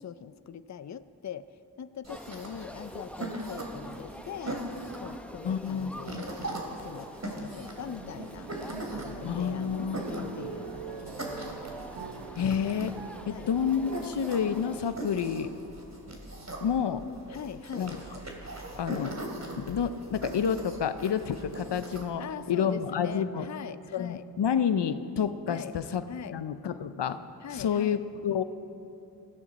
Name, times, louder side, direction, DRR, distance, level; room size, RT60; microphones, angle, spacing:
voice 1, 0.0-1.5 1.8-4.6 5.0-8.5 8.9-11.3 13.3-13.5 17.3-17.9 22.2-24.3 25.5-25.7 26.1-26.4 27.4-28.0, left 8 dB, 45° left, 14 dB, 0.5 m, -42 dB
sound 1, 2.0-22.0, right 1 dB, 40° right, 2.9 m, -41 dB
sound 2, 2.1-14.8, equal, 5° left, 0.7 m, -46 dB
voice 2, 5.4-6.2 9.2-10.3 12.4-12.9 13.3-15.5 16.6-17.0 17.8-17.9 18.8-19.2 19.6-23.5 23.9-26.0 26.3-27.2 27.5-28.4, left 7 dB, 80° left, 11 dB, 0.7 m, -29 dB
sound 3, 7.1-7.2 7.7-14.9, right 5 dB, 75° right, 1.0 m, -44 dB
19.5 x 14.5 x 4.2 m, 2.7 s
cardioid pair, 45°, 41 cm